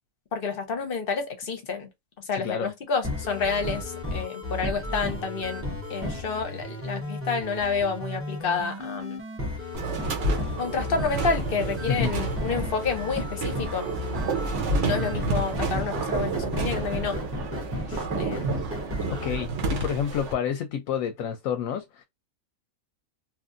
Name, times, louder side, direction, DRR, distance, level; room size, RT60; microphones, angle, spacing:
voice 1, 0.3-1.9 2.3-9.2 10.6-13.9 14.8-17.2 17.9-18.6, left 5 dB, 45° left, 0.9 m, -29 dB
voice 2, 2.3-2.7 11.9-12.1 19.2-22.0, left 8 dB, 70° left, 0.9 m, -29 dB
sound 1, 3.0-19.4, left 1 dB, 15° right, 0.6 m, -34 dB
sound 2, 9.7-20.3, right 3 dB, 60° right, 1.0 m, -30 dB
3.0 x 2.5 x 2.5 m
omnidirectional pair, 1.6 m